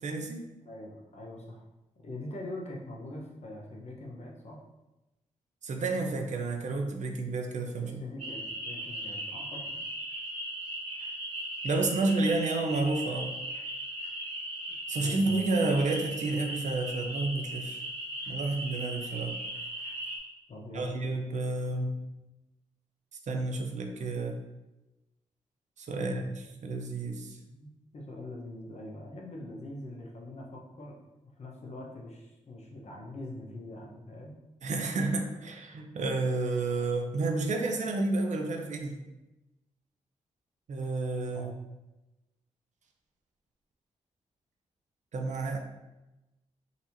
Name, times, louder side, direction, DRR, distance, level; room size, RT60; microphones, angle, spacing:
voice 1, 0.0-0.4 5.6-8.0 11.6-13.3 14.9-17.8 18.3-19.4 20.7-22.0 23.3-24.4 25.8-27.4 34.6-39.0 40.7-41.5 45.1-45.6, right 3 dB, 60° right, 3 dB, 0.6 m, -30 dB
voice 2, 0.6-1.6 2.0-4.6 7.8-9.8 15.0-15.3 20.5-20.9 25.9-26.2 27.5-30.9 31.4-34.4 41.3-41.5, left 1 dB, 55° left, -1 dB, 0.9 m, -43 dB
sound 1, 8.2-20.2, right 1 dB, 75° right, 1.3 m, -38 dB
4.0 x 2.8 x 2.6 m, 1.0 s
supercardioid pair, 45°, 14 cm